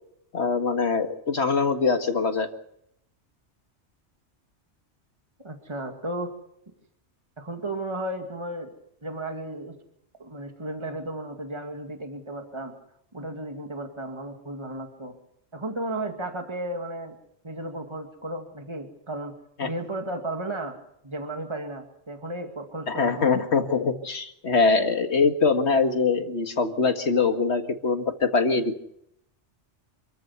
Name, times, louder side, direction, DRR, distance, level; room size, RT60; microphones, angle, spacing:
voice 1, 0.3-2.5 19.6-19.7 22.9-28.8, left 4 dB, 70° left, 6 dB, 2.1 m, -23 dB
voice 2, 5.4-6.3 7.4-8.7 9.0-9.7 10.2-12.7 13.1-15.1 15.5-17.2 17.4-19.3 19.6-20.8 21.0-23.4, right 1 dB, 25° right, 4 dB, 2.3 m, -34 dB
26.5 x 14.0 x 8.2 m, 0.74 s
omnidirectional pair, 1.2 m